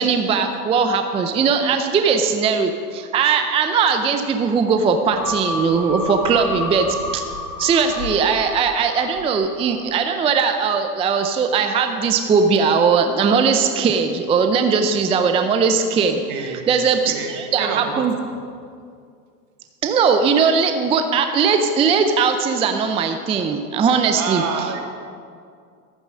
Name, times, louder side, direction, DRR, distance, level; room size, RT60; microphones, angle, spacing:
voice 1, 0.0-7.2 7.6-16.2 16.7-18.1 19.8-24.4, right 5 dB, 15° right, 6 dB, 0.5 m, -19 dB
sound 1, 5.1-9.8 10.2-10.3, left 2 dB, 80° left, 3.2 m, -30 dB
voice 2, 16.3-16.6 17.1-17.3 17.6-18.1 24.1-24.8, right 6 dB, 60° right, 3 dB, 2.3 m, -27 dB
14.0 x 9.1 x 6.2 m, 2.2 s
hypercardioid pair, 120°, 49 cm